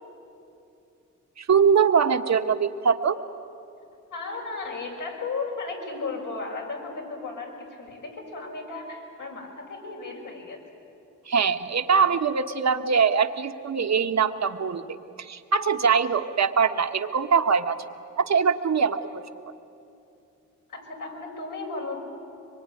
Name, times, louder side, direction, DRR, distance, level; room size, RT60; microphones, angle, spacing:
voice 1, 1.4-3.2 11.3-17.8 18.2-19.2, right 6 dB, 55° right, 8 dB, 1.4 m, -22 dB
voice 2, 4.1-10.6 11.9-12.1 20.7-22.0, left 3 dB, 75° left, -1 dB, 6.7 m, -35 dB
24.0 x 23.0 x 9.9 m, 2.8 s
cardioid pair, 60°, 32 cm